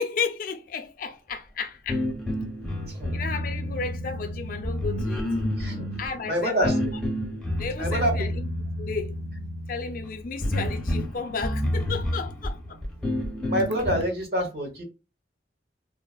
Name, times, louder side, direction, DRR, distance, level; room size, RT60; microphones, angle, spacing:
voice 1, 0.0-2.1 3.1-5.4 6.0-7.0 7.6-8.5 8.8-9.1 9.7-12.8, left 5 dB, 50° left, 0.4 m, -33 dB
sound 1, 1.9-14.0, left 1 dB, 5° left, 0.5 m, -30 dB
voice 2, 6.3-6.7 7.8-8.3 13.5-14.8, equal, 60° right, 1.0 m, -26 dB
3.1 x 2.0 x 2.2 m
head